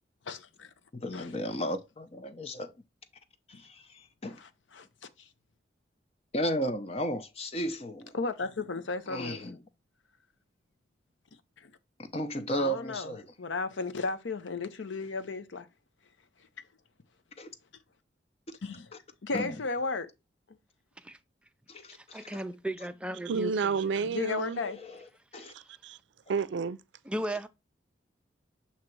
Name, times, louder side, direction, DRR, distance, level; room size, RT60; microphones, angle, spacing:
voice 1, 0.3-0.7 1.1-1.3 3.5-3.6 4.4-4.9 5.2-5.3 8.1-9.4 11.6-11.7 12.6-15.7 18.6-18.9 19.2-20.1 24.1-24.8, left 4 dB, 85° left, 0.7 m, -35 dB
voice 2, 1.0-2.7 3.5-4.4 6.3-8.1 9.1-9.6 12.0-13.2 17.4-17.5 19.3-19.6 21.7-22.3 24.7-25.0 25.3-25.5, equal, 35° left, 0.6 m, -34 dB
voice 3, 21.9-23.5 25.4-25.7 27.1-27.5, right 1 dB, 5° right, 0.4 m, -36 dB
voice 4, 23.3-24.6 25.4-26.0 26.3-26.8, right 5 dB, 80° right, 0.4 m, -31 dB
7.4 x 2.9 x 4.5 m
head